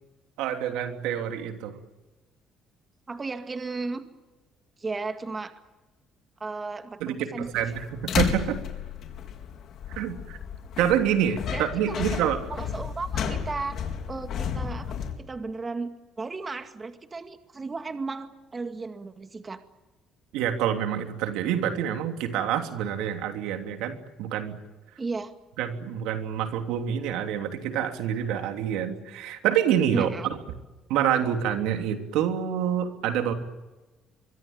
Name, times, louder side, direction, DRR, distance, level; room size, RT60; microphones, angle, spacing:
voice 1, 0.4-1.8 7.0-8.6 9.9-10.4 10.8-12.4 20.3-24.6 25.6-30.1 30.9-33.3, right 9 dB, 90° right, 6 dB, 3.1 m, -27 dB
voice 2, 3.1-4.0 4.8-5.5 6.4-7.7 11.5-12.2 12.5-13.8 14.1-15.9 16.2-19.6 25.0-25.3 29.9-30.3, right 3 dB, 25° right, 7 dB, 2.2 m, -35 dB
sound 1, 7.4-15.1, left 7 dB, 60° left, 4.1 m, -32 dB
24.5 x 24.0 x 8.9 m, 1.1 s
cardioid pair, 105°, 0 cm